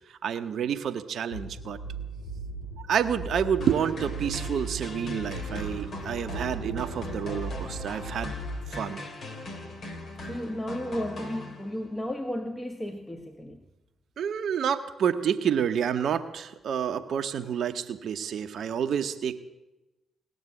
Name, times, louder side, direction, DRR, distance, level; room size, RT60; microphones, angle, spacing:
voice 1, 0.2-1.8 2.9-8.3 8.7-9.0 14.2-19.4, right 8 dB, 65° right, 8 dB, 0.9 m, -29 dB
sound 1, 1.3-8.7, right 1 dB, 90° left, 1.8 m, -37 dB
sound 2, 3.6-12.0, left 2 dB, 60° left, 3.2 m, -40 dB
voice 2, 10.2-13.6, left 1 dB, 20° left, 4 dB, 1.7 m, -34 dB
19.0 x 7.3 x 9.8 m, 1.0 s
hypercardioid pair, 45°, 0 cm